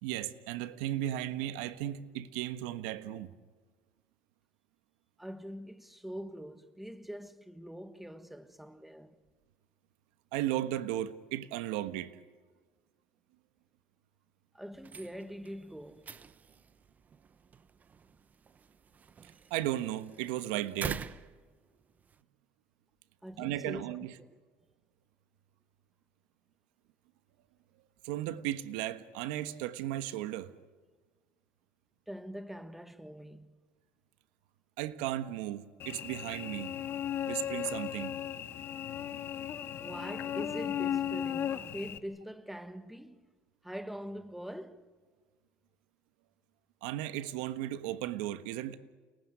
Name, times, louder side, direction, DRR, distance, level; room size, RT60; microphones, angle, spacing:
voice 1, 0.0-3.3 10.3-12.2 19.5-21.0 23.4-24.1 28.0-30.5 34.8-36.7 37.3-38.1 46.8-48.8, right 13 dB, 85° right, 1.3 m, -35 dB
voice 2, 5.2-9.2 14.5-16.1 23.2-23.8 32.1-33.5 39.8-43.3 43.6-44.9, equal, 5° right, 1.5 m, -43 dB
sound 1, 14.7-22.2, right 6 dB, 30° right, 1.0 m, -46 dB
Cricket / Buzz, 35.8-42.0, left 10 dB, 50° left, 1.7 m, -36 dB
29.5 x 19.5 x 9.7 m
supercardioid pair, 105°, 5 cm